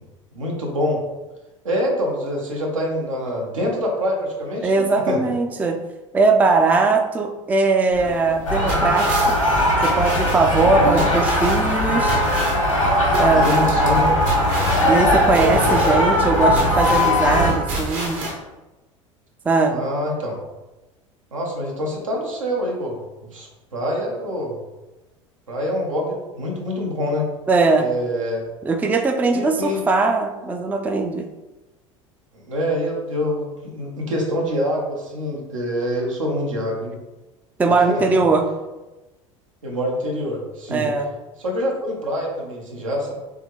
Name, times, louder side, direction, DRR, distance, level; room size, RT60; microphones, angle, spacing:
voice 1, 0.3-1.0 1.6-5.2 10.6-11.0 13.3-14.1 15.3-16.1 19.6-20.4 21.3-23.0 23.3-24.6 25.5-27.3 27.8-28.4 29.3-29.8 32.3-36.9 37.7-38.2 39.6-40.9 41.4-43.1, left 1 dB, 75° right, -1 dB, 0.9 m, -25 dB
voice 2, 4.6-5.8 6.1-9.4 9.8-12.2 13.2-13.6 14.8-18.2 19.5-19.9 27.5-27.9 28.6-31.3 37.6-38.5 40.7-41.1, right 3 dB, 10° right, 5 dB, 0.3 m, -20 dB
sound 1, 7.9-18.3, right 1 dB, 55° right, 1.1 m, -30 dB
sound 2, 8.5-17.5, left 1 dB, 90° left, 1.0 m, -19 dB
3.7 x 3.3 x 3.1 m, 1.1 s
figure-of-eight pair, 70°, 17 cm